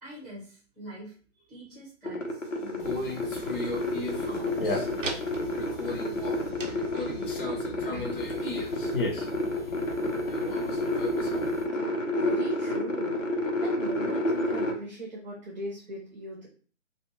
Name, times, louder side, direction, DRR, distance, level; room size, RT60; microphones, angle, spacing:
voice 1, 0.0-3.0, equal, 5° right, -6 dB, 1.0 m, -46 dB
sound 1, 2.0-14.7, left 1 dB, 85° left, 0.9 m, -30 dB
sound 2, 2.4-7.4, right 3 dB, 85° right, 0.7 m, -43 dB
Conversation, 2.8-11.6, left 2 dB, 45° left, 0.9 m, -35 dB
voice 2, 12.2-13.2 13.6-16.5, right 1 dB, 35° right, -4 dB, 0.8 m, -38 dB
2.4 x 2.3 x 3.1 m, 0.42 s
figure-of-eight pair, 135°, 37 cm